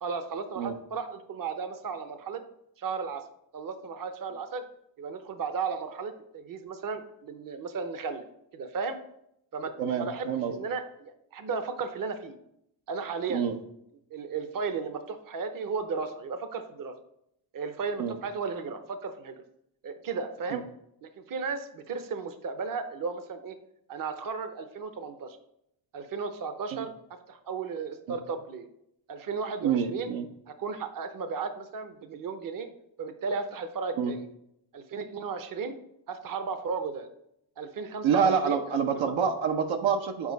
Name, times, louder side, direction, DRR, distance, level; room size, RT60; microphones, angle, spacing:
voice 1, 0.0-2.4 2.8-3.2 3.5-4.6 5.0-8.2 8.5-9.0 9.5-12.4 12.9-13.5 14.1-16.9 17.5-19.4 19.8-20.6 21.0-23.6 23.9-25.4 25.9-26.9 27.3-28.7 29.1-30.1 30.5-32.7 33.0-34.3 34.7-35.8 36.1-37.1 37.6-38.6 39.0-39.1, right 5 dB, 40° right, 9 dB, 0.8 m, -35 dB
voice 2, 9.8-10.5 13.3-13.5 18.0-18.1 20.5-20.6 26.7-26.8 28.1-28.2 29.6-30.3 34.0-34.1 38.0-40.3, right 7 dB, 70° right, 5 dB, 0.8 m, -27 dB
7.3 x 4.6 x 3.9 m, 0.77 s
cardioid pair, 85°, 49 cm